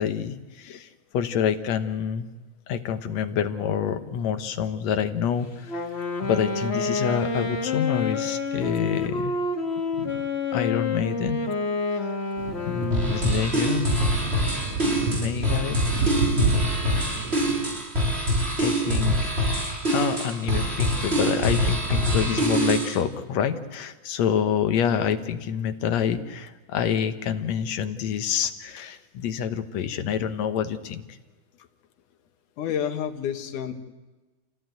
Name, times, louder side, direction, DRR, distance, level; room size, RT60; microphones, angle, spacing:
voice 1, 0.0-2.3 2.7-5.9 6.2-9.4 9.9-10.1 10.5-11.4 12.7-13.9 15.1-15.8 18.6-31.2, left 8 dB, 65° left, 8 dB, 2.2 m, -27 dB
Wind instrument woodwind instrument, 5.7-13.5, left 4 dB, 35° left, 1.1 m, -28 dB
sound 1, 12.4-17.8, right 3 dB, 55° right, 3.2 m, -30 dB
sound 2, 12.9-23.0, equal, 20° right, 3.4 m, -24 dB
voice 2, 32.6-33.7, left 9 dB, 80° left, 6 dB, 2.9 m, -29 dB
27.5 x 16.0 x 9.3 m, 1.2 s
omnidirectional pair, 3.5 m